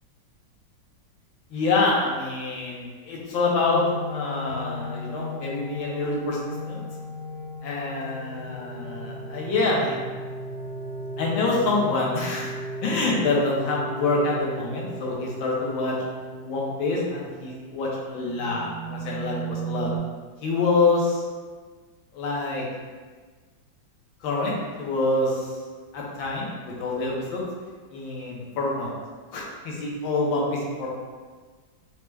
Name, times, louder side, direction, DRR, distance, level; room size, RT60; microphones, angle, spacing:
voice 1, 1.5-3.8 4.1-6.8 7.6-10.0 11.2-12.5 12.8-15.9 16.4-19.9 20.4-21.2 22.1-22.6 24.2-25.5 25.9-27.4 27.9-28.9 29.3-30.9, left 3 dB, 80° left, -3 dB, 1.6 m, -26 dB
sound 1, 3.6-20.0, right 1 dB, 55° right, 1.0 m, -36 dB
4.6 x 2.1 x 3.3 m, 1.4 s
omnidirectional pair, 2.2 m